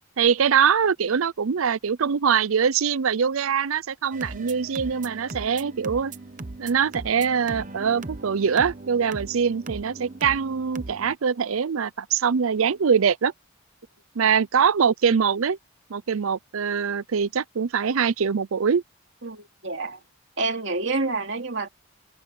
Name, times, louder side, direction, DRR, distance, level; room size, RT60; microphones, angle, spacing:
voice 1, 0.2-6.1 6.6-13.3 14.2-15.6 15.9-18.8, right 6 dB, 80° right, 0.5 m, -23 dB
sound 1, 4.1-11.2, right 2 dB, 40° right, 1.0 m, -38 dB
voice 2, 19.2-20.0 20.4-21.7, right 3 dB, 60° right, 2.9 m, -28 dB
head